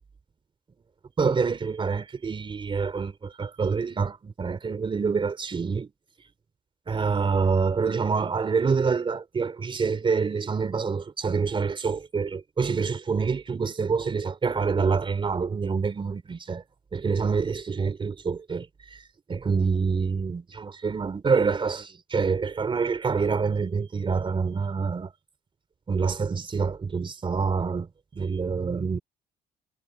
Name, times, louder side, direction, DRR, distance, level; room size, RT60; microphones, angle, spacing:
voice 1, 1.2-5.9 6.9-16.6 16.9-19.0 19.3-25.1 25.9-29.0, right 5 dB, 30° right, 3.3 m, -26 dB
cardioid pair, 110°, 17 cm